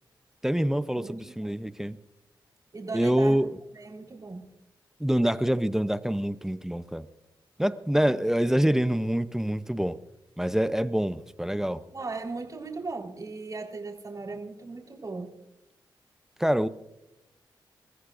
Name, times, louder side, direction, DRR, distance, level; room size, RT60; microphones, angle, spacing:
voice 1, 0.4-2.0 2.9-3.5 5.0-7.1 7.6-10.0 10.4-11.8 16.4-16.7, equal, 5° right, 12 dB, 0.6 m, -26 dB
voice 2, 0.9-1.6 2.7-3.4 3.7-4.5 11.9-15.3, right 3 dB, 45° right, 0 dB, 4.1 m, -38 dB
28.0 x 14.5 x 2.6 m, 0.89 s
cardioid pair, 70°, 8 cm